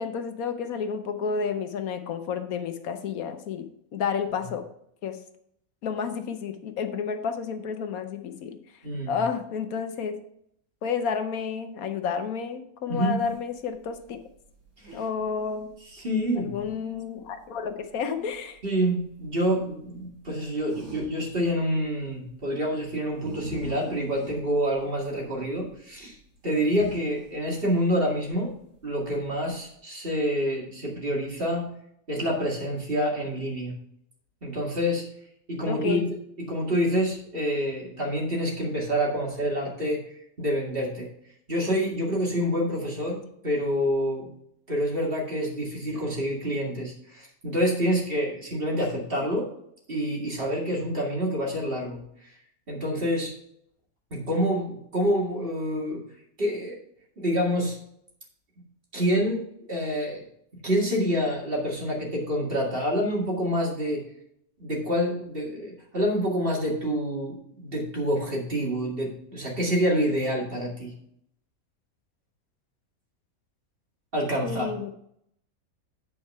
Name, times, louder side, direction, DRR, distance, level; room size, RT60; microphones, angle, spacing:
voice 1, 0.0-3.7 3.9-4.6 5.0-5.2 5.8-8.6 9.1-10.1 10.8-14.2 14.9-15.7 16.3-18.6 35.7-36.1 74.4-74.9, left 6 dB, 80° left, 8 dB, 1.3 m, -30 dB
voice 2, 8.8-9.2 12.9-13.2 14.8-15.0 15.9-16.7 18.6-26.2 26.4-28.5 28.8-31.7 32.1-33.7 34.4-35.0 35.5-36.0 36.4-40.0 40.4-41.1 41.5-44.3 44.7-49.5 49.9-52.0 52.7-53.3 54.1-56.0 56.4-56.7 57.2-57.8 58.9-60.2 60.6-64.0 64.6-70.9 74.1-74.7, equal, 40° right, -2 dB, 2.3 m, -27 dB
sound 1, 13.2-29.7, right 2 dB, 80° right, 2.7 m, -47 dB
8.4 x 4.7 x 5.4 m, 0.71 s
omnidirectional pair, 1.5 m